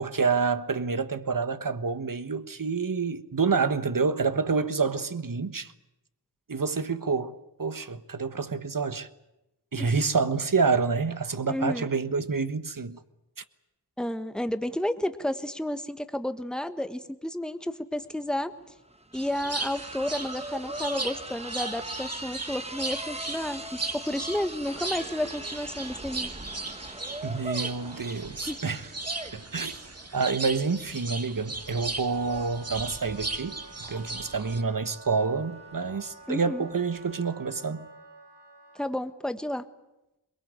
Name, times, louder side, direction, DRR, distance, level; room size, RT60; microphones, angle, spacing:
voice 1, 0.0-5.7 6.5-7.3 7.6-9.1 9.7-13.0 13.4-13.5 27.2-28.9 29.3-29.8 30.1-37.9, right 4 dB, 55° right, 1.3 m, -28 dB
voice 2, 11.4-11.9 14.0-18.5 19.1-26.3 28.5-28.6 36.3-36.7 38.8-39.6, left 1 dB, ahead, 1.5 m, -31 dB
sound 1, 18.0-18.1 18.4-37.2, right 1 dB, 15° right, 1.4 m, -42 dB
sound 2, 19.1-34.6, right 3 dB, 35° right, 2.0 m, -37 dB
Wind instrument woodwind instrument, 32.0-39.0, right 3 dB, 85° right, 2.3 m, -50 dB
22.5 x 22.0 x 8.9 m
wide cardioid pair, 45°, 40 cm